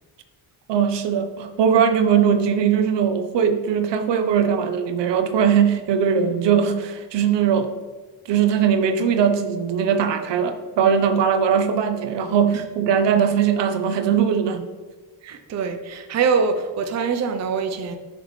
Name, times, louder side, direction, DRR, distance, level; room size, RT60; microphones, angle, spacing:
voice 1, 0.7-7.7 8.3-14.7, right 7 dB, 85° right, 8 dB, 0.9 m, -20 dB
voice 2, 15.2-18.0, right 5 dB, 40° right, 6 dB, 0.6 m, -24 dB
9.1 x 6.2 x 3.2 m, 1.4 s
wide cardioid pair, 175°, 42 cm